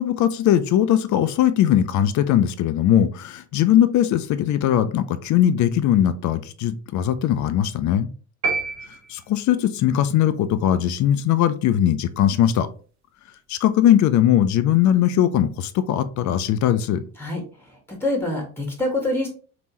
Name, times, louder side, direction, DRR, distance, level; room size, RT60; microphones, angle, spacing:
voice 1, 0.0-8.1 9.1-12.7 13.5-17.0, left 11 dB, 45° left, 12 dB, 0.5 m, -20 dB
sound 1, 8.4-9.7, right 4 dB, 40° right, 1.0 m, -28 dB
voice 2, 17.2-19.3, left 1 dB, 5° left, 2 dB, 1.6 m, -26 dB
3.5 x 3.0 x 2.9 m, 0.39 s
hypercardioid pair, 60°, 42 cm